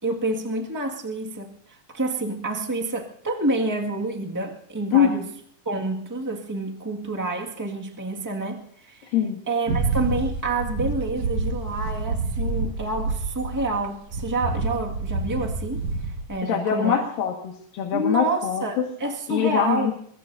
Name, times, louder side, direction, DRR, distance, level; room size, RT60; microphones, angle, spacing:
voice 1, 0.0-5.3 5.6-9.2 9.5-17.0 17.9-19.9, right 2 dB, 20° right, 0 dB, 0.4 m, -28 dB
sound 1, 9.7-13.9 14.1-16.3, right 3 dB, 55° right, 2.4 m, -28 dB
voice 2, 16.4-18.6 19.3-19.9, left 9 dB, 75° left, 2 dB, 3.5 m, -23 dB
23.5 x 22.5 x 2.7 m, 0.66 s
omnidirectional pair, 4.1 m